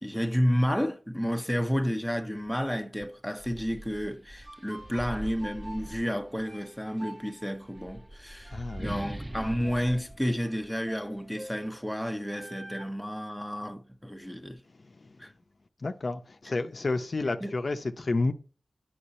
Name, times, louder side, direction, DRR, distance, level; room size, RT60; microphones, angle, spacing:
voice 1, 0.0-14.6 15.2-15.3 17.4-17.6, equal, ahead, 0.9 m, -31 dB
sound 1, 2.4-2.6 3.0-6.6 7.6-11.2, right 1 dB, 15° right, 0.4 m, -42 dB
sound 2, 4.4-12.8, right 1 dB, 60° right, 1.5 m, -49 dB
voice 2, 8.5-9.0 14.8-15.2 15.8-18.3, left 3 dB, 60° left, 0.7 m, -30 dB
8.5 x 5.8 x 4.2 m
cardioid pair, 55°, 0 cm